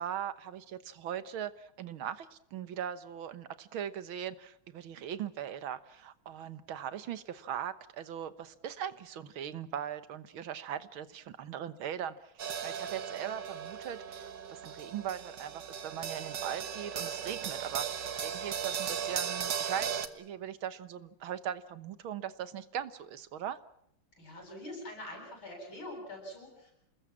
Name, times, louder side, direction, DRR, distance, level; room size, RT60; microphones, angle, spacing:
voice 1, 0.0-12.3 12.6-23.6, right 9 dB, 85° right, 14 dB, 2.0 m, -40 dB
sound 1, 12.4-20.1, right 8 dB, 65° right, 2.0 m, -37 dB
voice 2, 24.2-26.7, left 1 dB, 80° left, 0 dB, 8.9 m, -44 dB
27.5 x 20.5 x 7.4 m, 0.76 s
omnidirectional pair, 2.2 m